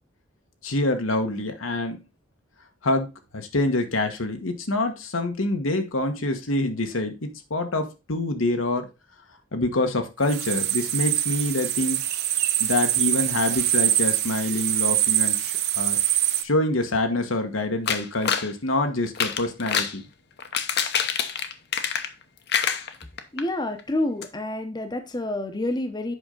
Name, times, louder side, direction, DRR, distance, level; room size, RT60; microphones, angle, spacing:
voice 1, 0.6-2.0 2.8-3.1 3.3-8.9 9.5-12.0 12.6-16.2 16.4-20.0, left 2 dB, 90° left, 5 dB, 1.3 m, -26 dB
sound 1, 10.2-16.4, right 12 dB, 55° right, 0.7 m, -24 dB
sound 2, 17.9-18.5 19.1-20.0 20.4-22.2 22.5-23.4 23.8-23.9 24.2-24.3, left 7 dB, 55° left, 0.8 m, -26 dB
voice 2, 23.3-26.2, left 1 dB, 20° left, 7 dB, 0.8 m, -28 dB
8.1 x 5.6 x 3.8 m, 0.28 s
head